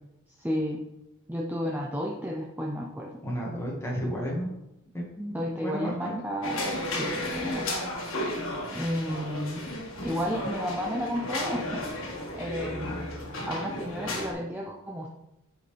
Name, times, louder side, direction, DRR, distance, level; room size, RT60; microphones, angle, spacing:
voice 1, 0.4-0.8 1.3-3.2 5.3-7.7 8.7-9.6 10.0-13.0 13.5-15.1, equal, 10° right, -1 dB, 0.5 m, -32 dB
voice 2, 3.2-4.5 4.9-6.2, equal, 10° left, -3 dB, 1.7 m, -33 dB
sound 1, 6.4-14.3, left 1 dB, 70° left, 1.8 m, -33 dB
9.1 x 5.3 x 3.3 m, 0.90 s
head